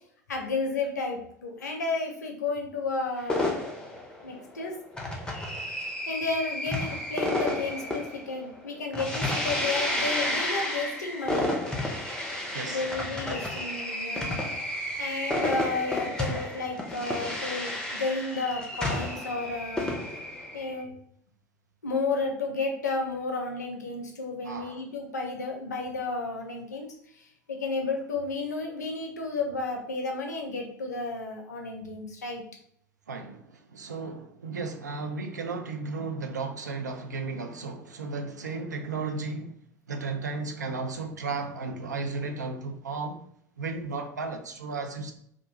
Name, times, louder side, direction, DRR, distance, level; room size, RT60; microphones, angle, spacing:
voice 1, 0.3-3.5 4.2-4.8 5.8-11.5 12.6-14.5 15.0-20.0 20.5-20.9 21.8-26.9 27.2-32.4, left 3 dB, 75° left, 2 dB, 0.5 m, -32 dB
sound 1, 3.3-20.8, left 1 dB, 10° left, 0.5 m, -31 dB
voice 2, 12.5-12.8 24.4-24.8 33.1-39.6 39.9-43.2 43.6-45.1, right 4 dB, 80° right, 5 dB, 0.3 m, -34 dB
2.4 x 2.1 x 2.8 m, 0.68 s
figure-of-eight pair, 70°, 9 cm